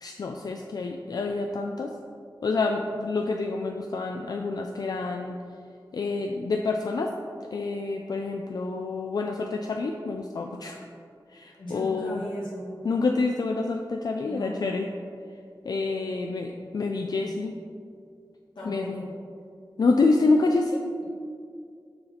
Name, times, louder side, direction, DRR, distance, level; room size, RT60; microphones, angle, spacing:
voice 1, 0.0-1.9 2.4-5.4 5.9-7.1 7.5-10.8 11.3-12.2 12.8-14.9 15.6-17.6 18.6-19.0 19.8-20.8, left 3 dB, 55° left, 3 dB, 0.3 m, -27 dB
voice 2, 11.6-12.8 14.2-14.9 18.5-19.1, equal, 80° left, -8 dB, 1.3 m, -38 dB
6.5 x 4.1 x 4.3 m, 2.3 s
wide cardioid pair, 110°, 8 cm